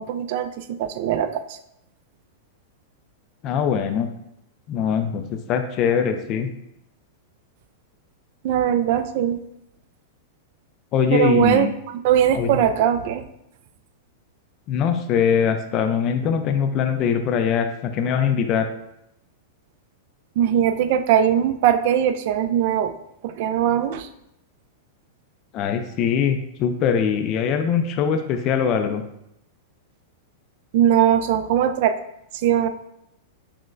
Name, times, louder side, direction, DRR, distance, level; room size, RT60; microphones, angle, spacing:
voice 1, 0.0-1.6 8.4-9.4 11.1-13.2 20.4-22.9 23.2-24.1 30.7-32.0 32.3-32.7, right 10 dB, 60° right, 10 dB, 0.3 m, -20 dB
voice 2, 3.4-4.1 4.7-6.5 10.9-11.7 12.3-12.5 14.7-18.7 25.5-29.0, left 7 dB, 40° left, 7 dB, 0.3 m, -22 dB
6.0 x 2.1 x 2.5 m, 0.80 s
hypercardioid pair, 130°, 0 cm